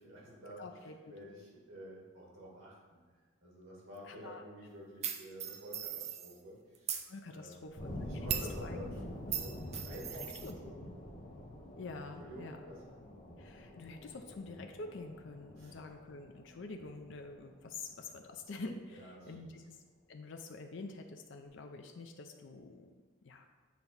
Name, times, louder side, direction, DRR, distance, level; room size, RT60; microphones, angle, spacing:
voice 1, 0.0-0.6 1.1-2.8 3.4-7.0 7.3-7.7 8.0-9.1 9.4-10.8 12.2-12.8 15.6-15.7 18.9-19.6, equal, 80° right, -4 dB, 2.1 m, -50 dB
voice 2, 0.6-1.0 4.0-4.4 6.9-7.9 8.5-8.9 9.6-9.9 10.4-10.9 11.8-12.6 13.4-19.8 20.1-22.9 23.2-23.5, left 3 dB, 60° left, 4 dB, 0.5 m, -47 dB
sound 1, 5.0-6.4 6.7-7.1 8.3-8.6 9.3-10.5, right 8 dB, 30° right, 0.4 m, -38 dB
sound 2, 7.8-18.5, left 1 dB, 40° left, 0.9 m, -47 dB
7.6 x 2.9 x 5.5 m, 1.4 s
head